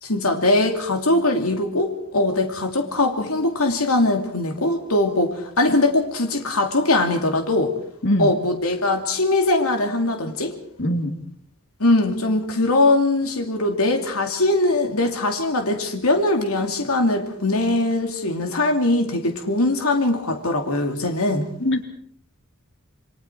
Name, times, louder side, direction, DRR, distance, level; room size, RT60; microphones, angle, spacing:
voice 1, 0.0-7.7 8.2-10.5 11.8-21.5, left 2 dB, 80° left, 4 dB, 2.6 m, -21 dB
voice 2, 10.8-11.2 21.6-21.8, left 1 dB, 55° left, 5 dB, 2.8 m, -22 dB
28.5 x 24.0 x 4.6 m, 0.63 s
head